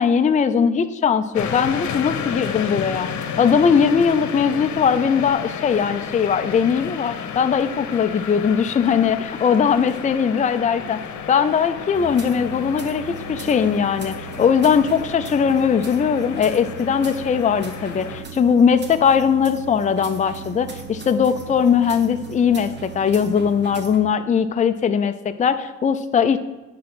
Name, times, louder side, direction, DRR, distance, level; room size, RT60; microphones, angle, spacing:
voice 1, 0.0-3.1 3.4-11.0 11.3-26.4, left 7 dB, 25° left, 9 dB, 0.4 m, -20 dB
sound 1, 1.3-18.2, left 7 dB, 70° left, 0.9 m, -32 dB
sound 2, 11.9-24.0, right 5 dB, 35° right, 1.2 m, -37 dB
10.0 x 3.8 x 6.1 m, 1.1 s
cardioid pair, 90°, 30 cm